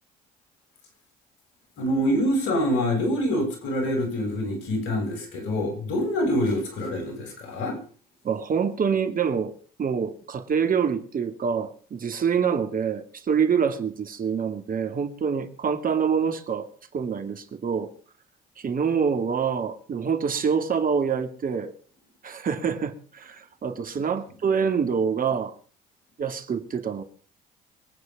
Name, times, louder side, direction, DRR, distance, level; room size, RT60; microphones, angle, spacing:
voice 1, 1.8-7.8, equal, 70° left, 7.2 m, -25 dB
voice 2, 8.2-9.5 9.8-17.9 18.6-21.7 22.2-25.5 26.2-27.0, right 6 dB, 45° right, 2.5 m, -26 dB
24.0 x 9.6 x 5.4 m
hypercardioid pair, 55°, 20 cm